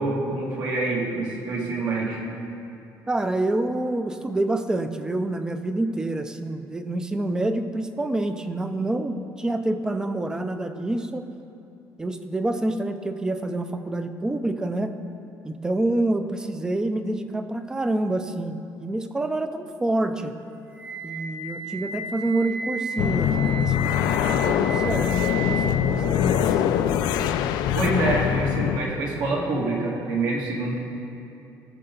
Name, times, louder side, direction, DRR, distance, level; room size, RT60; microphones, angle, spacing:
voice 1, 0.0-2.2 27.7-30.8, right 2 dB, 75° right, -3 dB, 2.3 m, -26 dB
voice 2, 3.1-11.2 12.0-14.9 15.4-20.3 21.0-25.9 26.2-26.5, right 2 dB, 10° right, 9 dB, 0.4 m, -27 dB
Wind instrument woodwind instrument, 20.7-26.7, right 2 dB, 30° right, 1.3 m, -34 dB
sound 1, 23.0-28.8, left 9 dB, 80° left, 0.5 m, -23 dB
18.5 x 6.7 x 3.9 m, 2.7 s
cardioid pair, 180°, 7 cm